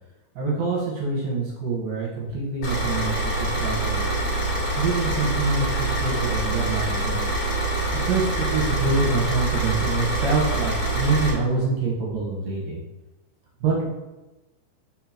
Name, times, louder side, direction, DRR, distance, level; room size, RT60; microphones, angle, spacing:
voice 1, 0.4-4.0 4.8-7.3 8.1-12.8 13.6-13.8, right 3 dB, 65° right, -4 dB, 3.0 m, -26 dB
Car / Idling, 2.6-11.3, right 2 dB, 50° left, 3.0 m, -25 dB
6.6 x 6.5 x 3.0 m, 1.1 s
omnidirectional pair, 5.0 m